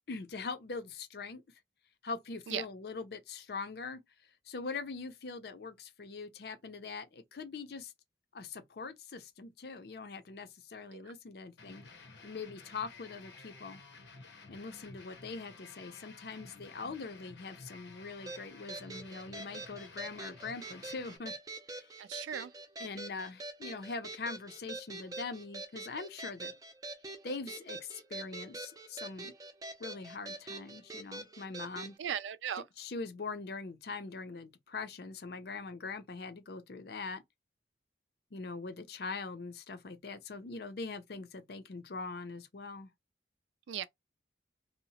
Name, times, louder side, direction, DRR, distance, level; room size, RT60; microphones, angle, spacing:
voice 1, 0.1-1.4 2.0-4.0 4.5-7.9 8.3-11.8 12.2-13.8 14.5-21.3 21.7-21.9 22.8-26.5 27.2-29.3 29.8-31.9 32.8-37.2 38.3-42.9, left 4 dB, 60° left, 0.5 m, -42 dB
sound 1, 11.6-21.2, left 3 dB, 90° left, 0.9 m, -53 dB
sound 2, 18.3-31.9, right 2 dB, 20° right, 0.4 m, -45 dB
voice 2, 22.0-22.5 32.0-32.6 43.7-43.9, right 9 dB, 90° right, 0.3 m, -37 dB
2.8 x 2.0 x 2.7 m
head